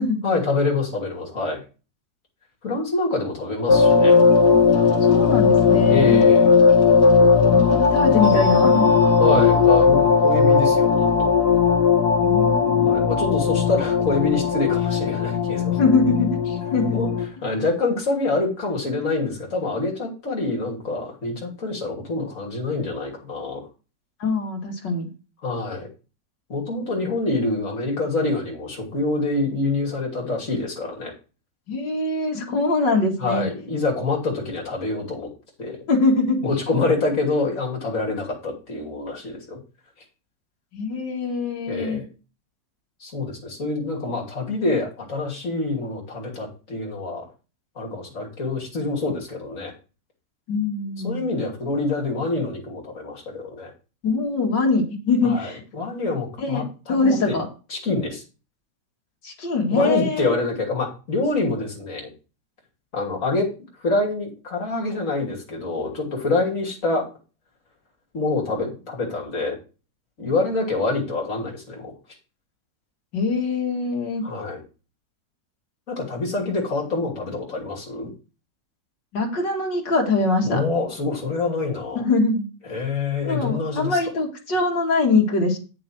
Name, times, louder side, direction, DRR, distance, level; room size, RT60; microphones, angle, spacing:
voice 1, 0.2-1.6 2.6-4.2 5.9-6.5 9.2-11.3 12.8-15.8 16.9-17.1 17.4-23.6 25.4-25.9 26.5-31.1 33.2-35.3 35.6-35.8 36.4-39.6 41.7-42.1 43.0-47.2 47.8-49.7 51.0-53.7 55.2-57.4 57.7-58.2 59.7-62.1 62.9-63.5 63.8-67.0 68.1-69.6 70.2-71.9 74.2-74.6 75.9-78.1 80.4-82.0 82.7-84.0, left 3 dB, 45° left, -1 dB, 3.1 m, -26 dB
sound 1, 3.7-17.2, left 5 dB, 60° left, 2.4 m, -17 dB
voice 2, 5.0-6.2 7.5-8.9 12.2-13.2 15.8-17.0 24.2-25.1 31.7-33.5 35.9-36.4 40.7-42.0 50.5-51.3 54.0-55.6 56.4-57.5 59.2-60.3 73.1-74.2 79.1-80.6 82.0-82.4 83.3-85.6, left 3 dB, 80° left, 1 dB, 2.7 m, -23 dB
9.2 x 6.3 x 4.5 m, 0.33 s
omnidirectional pair, 1.9 m